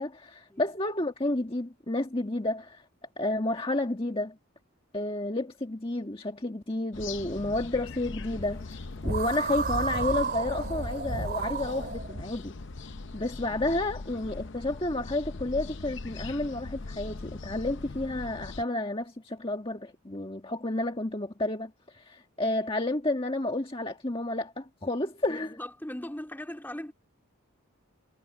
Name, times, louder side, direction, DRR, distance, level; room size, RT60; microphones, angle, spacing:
voice 1, 0.0-2.8 3.2-4.4 4.9-12.5 13.1-25.5, left 2 dB, 25° left, 1.7 m, -31 dB
sound 1, 6.9-18.6, left 3 dB, 55° left, 0.7 m, -41 dB
sound 2, 9.0-12.2, right 3 dB, 40° right, 3.1 m, -31 dB
voice 2, 25.3-26.9, left 1 dB, 10° left, 2.3 m, -39 dB
head